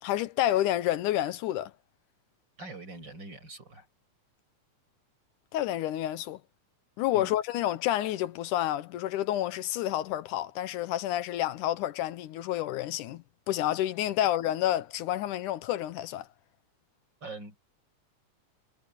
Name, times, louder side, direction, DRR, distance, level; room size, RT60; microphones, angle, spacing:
voice 1, 0.0-1.7 5.5-6.4 7.0-16.3, left 13 dB, 80° left, 2.3 m, -29 dB
voice 2, 2.6-3.9 7.1-7.3 17.2-17.6, right 2 dB, 35° right, 7.5 m, -43 dB
omnidirectional pair, 3.5 m